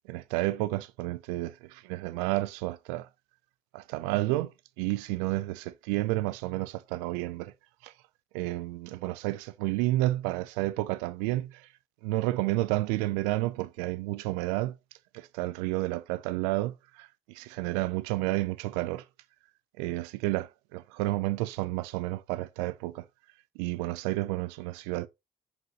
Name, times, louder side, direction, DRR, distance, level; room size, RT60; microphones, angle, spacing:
voice 1, 0.1-3.1 3.7-7.5 7.8-7.9 8.3-11.7 12.0-14.8 15.1-19.0 19.8-23.0 23.6-25.1, right 18 dB, 85° right, 0.5 m, -31 dB
7.4 x 4.9 x 2.9 m
hypercardioid pair, 50°, 20 cm